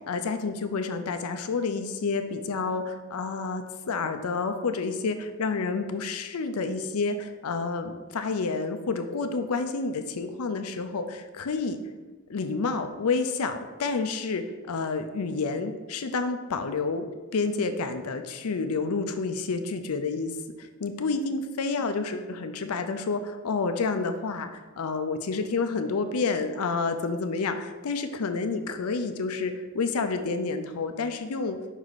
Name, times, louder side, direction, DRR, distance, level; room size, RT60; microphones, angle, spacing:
voice 1, 0.1-11.8 12.3-17.1 17.3-31.6, left 4 dB, 80° left, 7 dB, 0.5 m, -29 dB
5.4 x 4.8 x 4.0 m, 1.3 s
head